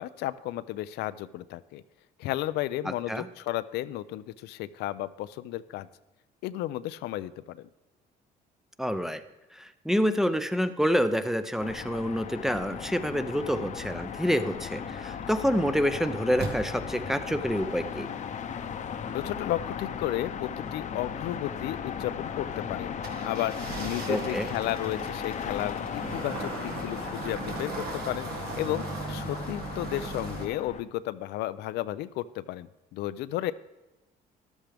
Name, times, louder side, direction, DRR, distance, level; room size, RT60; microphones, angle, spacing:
voice 1, 0.0-1.8 2.2-5.9 6.4-7.7 19.1-22.9 23.2-28.3 28.6-33.5, left 14 dB, 80° left, 14 dB, 0.5 m, -33 dB
voice 2, 8.8-9.2 9.5-18.1 24.1-24.5, equal, ahead, 10 dB, 0.6 m, -27 dB
sound 1, 11.6-30.8, left 7 dB, 45° left, 0.8 m, -37 dB
sound 2, 16.4-30.5, right 3 dB, 70° right, 1.7 m, -39 dB
13.5 x 11.5 x 3.4 m, 1.0 s
cardioid pair, 110°, 17 cm